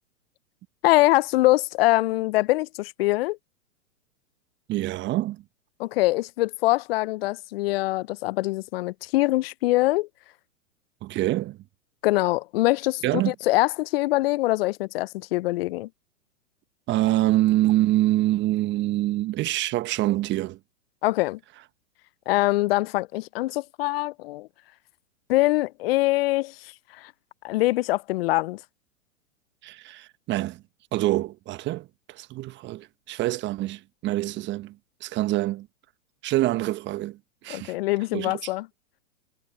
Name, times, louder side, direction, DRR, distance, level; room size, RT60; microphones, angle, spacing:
voice 1, 0.8-3.4 5.8-10.1 12.0-15.9 21.0-21.4 22.3-24.5 25.3-27.1 27.4-28.6 37.5-38.7, left 19 dB, 45° left, 0.8 m, -23 dB
voice 2, 4.7-5.4 11.0-11.6 13.0-13.3 16.9-20.6 29.6-30.6 30.9-34.7 35.0-35.7 36.2-37.2 37.4-37.8 38.1-38.3, right 16 dB, 25° right, 1.3 m, -25 dB
hypercardioid pair, 115°, 41 cm